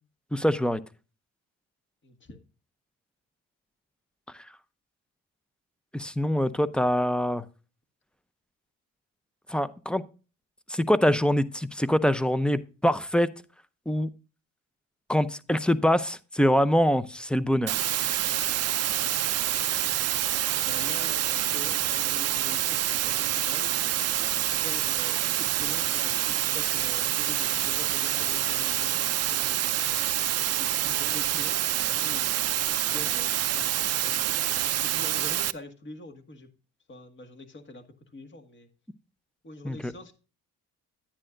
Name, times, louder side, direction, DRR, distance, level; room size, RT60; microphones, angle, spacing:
voice 1, 0.3-0.8 4.3-4.5 5.9-7.5 9.5-10.0 10.7-13.3 13.9-14.1 15.1-17.8 39.6-39.9, equal, 5° left, 0.6 m, -24 dB
voice 2, 2.0-2.4 19.6-34.2 34.8-36.5 36.9-37.9 38.1-38.7 39.4-40.1, left 2 dB, 40° left, 1.9 m, -45 dB
sound 1, 17.7-35.5, right 12 dB, 55° right, 0.5 m, -27 dB
9.9 x 9.8 x 2.6 m
cardioid pair, 90°, 30 cm